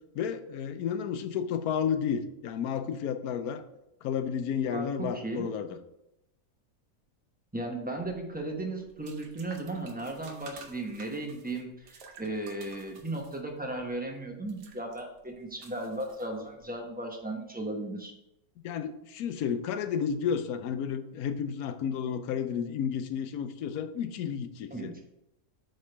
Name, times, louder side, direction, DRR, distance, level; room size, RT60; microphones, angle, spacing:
voice 1, 0.1-3.6 4.0-5.7 18.6-24.9, left 7 dB, 75° left, 10 dB, 1.1 m, -32 dB
voice 2, 4.7-5.5 7.5-18.1 24.7-25.0, right 2 dB, 10° right, 1 dB, 0.6 m, -36 dB
sound 1, 7.9-16.8, right 5 dB, 90° right, 1.4 m, -53 dB
7.8 x 3.4 x 4.4 m, 0.86 s
omnidirectional pair, 1.6 m